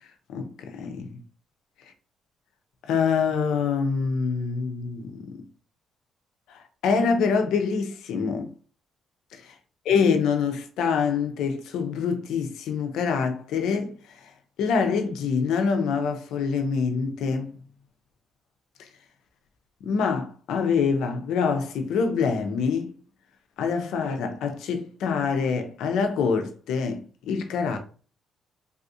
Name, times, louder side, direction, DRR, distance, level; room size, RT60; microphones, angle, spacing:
voice 1, 0.3-1.2 2.8-5.3 6.5-8.5 9.3-9.5 9.8-14.3 14.6-17.5 18.8-18.9 19.8-22.9 23.6-27.8, left 5 dB, 85° left, 0.6 m, -25 dB
3.4 x 2.4 x 2.7 m
cardioid pair, 90°, 0 cm